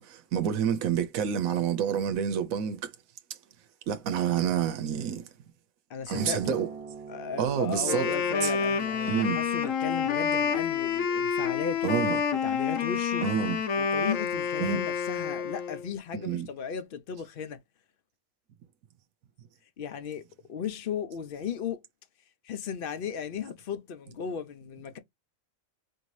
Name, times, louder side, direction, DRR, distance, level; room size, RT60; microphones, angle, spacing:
voice 1, 0.0-2.9 3.9-5.3 6.1-6.7 7.4-8.1 8.4-8.5 9.1-9.4 11.8-12.2 13.2-13.6 14.6-14.8 16.1-16.5, right 8 dB, 90° right, 1.1 m, -28 dB
voice 2, 5.9-6.6 7.1-11.9 12.3-13.2 13.8-17.6 19.8-20.2 20.5-21.8 22.4-25.0, left 7 dB, 55° left, 0.7 m, -35 dB
sound 1, 6.1-13.3, right 5 dB, 25° right, 1.3 m, -45 dB
Wind instrument woodwind instrument, 7.7-15.9, left 6 dB, 75° left, 1.2 m, -28 dB
4.6 x 2.7 x 3.1 m
omnidirectional pair, 1.4 m